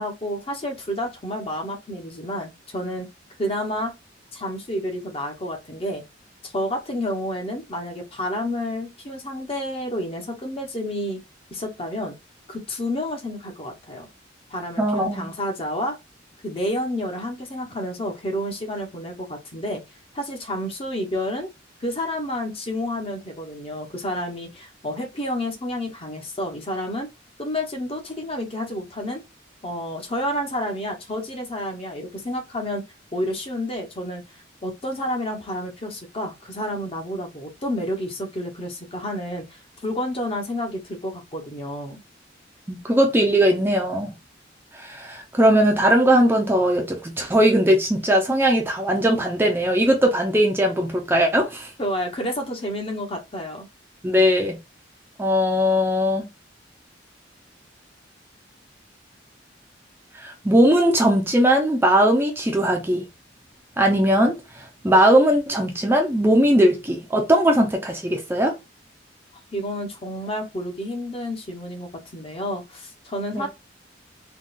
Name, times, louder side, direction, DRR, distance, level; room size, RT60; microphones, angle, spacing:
voice 1, 0.0-3.1 3.4-3.9 4.3-6.0 6.4-11.2 11.5-12.2 12.5-14.1 14.5-16.0 16.4-19.8 20.1-21.5 21.8-27.1 27.4-29.2 29.6-32.8 33.1-34.2 34.6-42.0 51.8-53.7 69.5-73.5, left 1 dB, 30° left, 0.8 m, -30 dB
voice 2, 14.8-15.3 42.7-44.1 44.7-51.7 54.0-54.6 55.2-56.3 60.1-63.0 63.8-68.6 73.3-73.5, equal, 10° right, 0.5 m, -19 dB
3.6 x 2.4 x 2.4 m
head